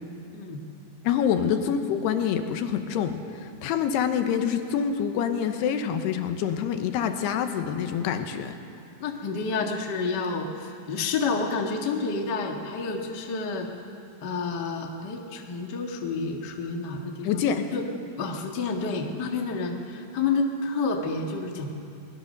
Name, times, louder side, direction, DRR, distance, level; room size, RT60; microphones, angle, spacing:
voice 1, 1.0-8.6 17.2-17.7, left 8 dB, 80° left, 7 dB, 3.1 m, -26 dB
voice 2, 9.0-13.7 14.2-17.8 18.2-21.7, left 4 dB, 60° left, 2 dB, 1.0 m, -29 dB
22.0 x 20.0 x 6.7 m, 2.6 s
omnidirectional pair, 4.8 m